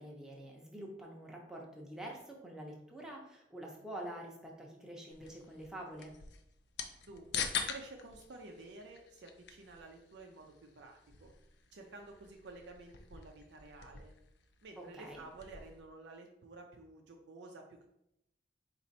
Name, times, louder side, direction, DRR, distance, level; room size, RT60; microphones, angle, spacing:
voice 1, 0.0-6.1 14.8-15.2, right 1 dB, 5° right, -1 dB, 0.7 m, -47 dB
sound 1, 5.1-15.8, left 6 dB, 70° left, 0.5 m, -45 dB
voice 2, 7.0-11.3 11.7-14.1 14.6-17.9, right 2 dB, 75° right, 2 dB, 0.5 m, -52 dB
4.2 x 2.5 x 4.0 m, 0.81 s
head